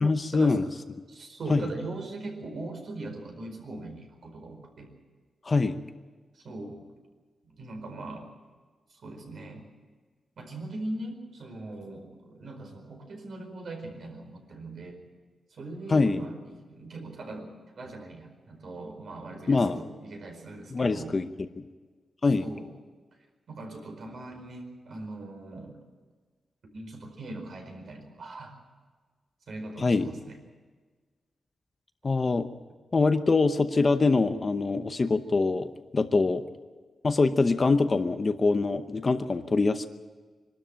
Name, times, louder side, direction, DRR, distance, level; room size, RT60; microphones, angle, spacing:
voice 1, 0.0-0.6 1.5-1.7 5.5-5.8 15.9-16.2 19.5-19.8 20.7-21.3 21.6-21.7 22.2-22.5 29.8-30.1 32.0-32.5 32.9-36.4 37.0-39.9, left 3 dB, 30° left, 9 dB, 0.8 m, -24 dB
voice 2, 1.1-4.9 6.3-6.8 7.4-8.3 8.9-9.7 10.4-15.0 15.5-17.5 17.7-21.2 22.2-22.7 23.5-25.8 26.6-28.5 29.5-30.4 36.1-36.2, right 2 dB, 60° right, 3 dB, 4.8 m, -40 dB
24.5 x 12.5 x 8.9 m, 1.4 s
wide cardioid pair, 160°, 0 cm